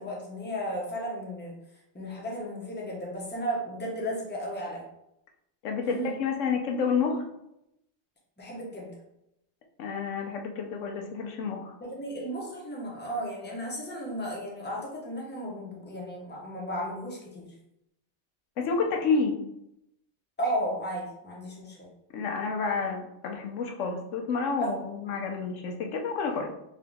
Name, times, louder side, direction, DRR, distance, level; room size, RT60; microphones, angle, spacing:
voice 1, 0.0-1.5 1.9-4.8 5.8-6.1 8.4-8.9 11.8-17.5 20.4-21.9 24.6-24.7, equal, 10° left, -3 dB, 0.7 m, -34 dB
voice 2, 5.6-7.2 9.8-11.7 18.6-19.4 22.1-26.5, left 5 dB, 85° left, 3 dB, 1.0 m, -29 dB
3.7 x 2.9 x 3.4 m, 0.83 s
omnidirectional pair, 1.3 m